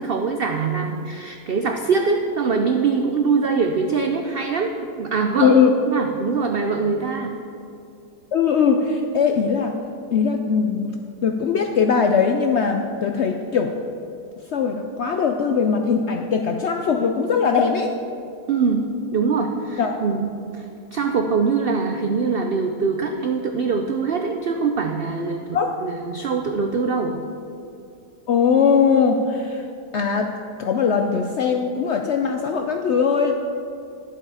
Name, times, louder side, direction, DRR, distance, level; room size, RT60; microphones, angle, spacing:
voice 1, 0.0-5.6 5.9-7.4 18.5-27.2, right 5 dB, 90° right, 4 dB, 0.5 m, -23 dB
voice 2, 5.4-5.7 8.3-9.8 10.1-11.0 11.2-13.7 14.5-17.9 19.8-20.1 25.5-25.7 28.3-29.6 29.9-30.3 30.6-33.3, left 6 dB, 70° left, 4 dB, 0.6 m, -20 dB
11.0 x 7.9 x 4.8 m, 2.6 s
omnidirectional pair, 1.7 m